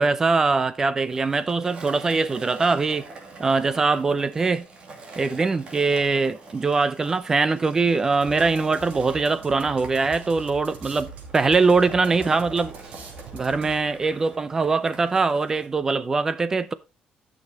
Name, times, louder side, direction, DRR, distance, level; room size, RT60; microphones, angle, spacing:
voice 1, 0.0-3.1 3.4-4.7 5.2-12.7 13.3-16.7, right 4 dB, 20° right, 0.6 m, -22 dB
Skateboard, 1.0-15.7, right 3 dB, 40° right, 2.5 m, -44 dB
sound 1, 8.2-14.1, right 3 dB, 80° right, 3.7 m, -43 dB
13.0 x 6.5 x 4.1 m
cardioid pair, 175°, 3 cm